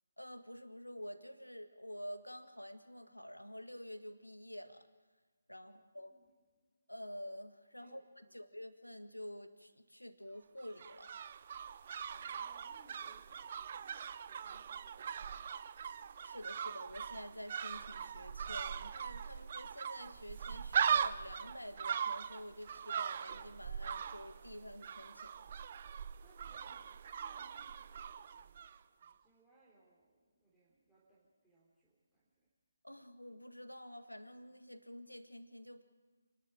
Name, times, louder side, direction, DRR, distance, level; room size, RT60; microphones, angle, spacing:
voice 1, 0.2-4.9 5.5-6.1 6.9-8.0 8.3-11.2 16.2-25.5 32.8-35.8, equal, 90° left, 8 dB, 1.8 m, -49 dB
voice 2, 5.6-6.3 6.6-6.7 7.8-8.4 12.1-15.8 26.2-32.5, right 2 dB, 5° right, -9 dB, 3.5 m, -69 dB
sound 1, 10.6-28.8 29.0-29.1, right 7 dB, 40° right, 0.7 m, -40 dB
28.0 x 11.5 x 9.0 m, 1.3 s
figure-of-eight pair, 145°, 0 cm